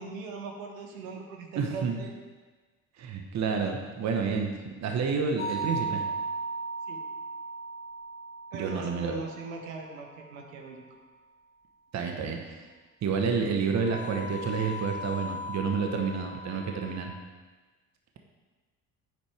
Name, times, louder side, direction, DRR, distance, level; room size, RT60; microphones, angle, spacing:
voice 1, 0.0-2.1 6.9-7.0 8.5-10.8, right 4 dB, 70° right, 2 dB, 1.6 m, -40 dB
voice 2, 1.5-2.0 3.0-4.5 4.8-6.0 8.5-9.1 11.9-12.7 13.0-17.1, right 5 dB, 40° right, 3 dB, 1.3 m, -29 dB
sound 1, 5.4-10.3 13.8-17.0, right 2 dB, 30° left, 2.8 m, -37 dB
12.0 x 9.1 x 3.5 m, 1.3 s
figure-of-eight pair, 55°, 41 cm